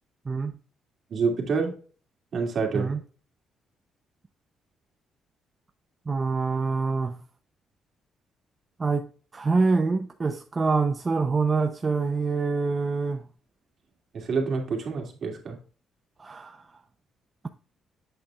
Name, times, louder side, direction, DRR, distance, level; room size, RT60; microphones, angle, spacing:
voice 1, 1.1-1.7 2.3-2.9 14.1-15.6, right 5 dB, 55° right, 2.5 m, -27 dB
voice 2, 6.1-7.2 8.8-13.2 16.2-16.7, right 4 dB, 30° right, 0.6 m, -25 dB
8.1 x 6.8 x 2.4 m
cardioid pair, 90°, 0 cm